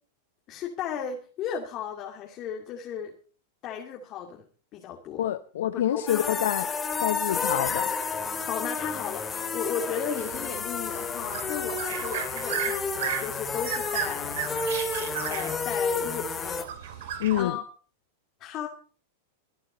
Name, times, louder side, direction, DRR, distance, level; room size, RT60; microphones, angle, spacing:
voice 1, 0.5-3.1 3.6-4.4 4.7-5.3 5.7-6.3 8.4-12.9 13.2-14.5 15.3-17.6 18.4-18.7, left 8 dB, 40° left, 2.6 m, -35 dB
voice 2, 5.2-6.7 7.0-7.9 17.2-17.6, left 12 dB, 75° left, 0.8 m, -27 dB
sound 1, 6.1-16.6, left 4 dB, 20° left, 2.3 m, -31 dB
sound 2, 10.2-17.4, right 8 dB, 70° right, 2.9 m, -35 dB
23.5 x 9.7 x 4.0 m
hypercardioid pair, 110°, 0 cm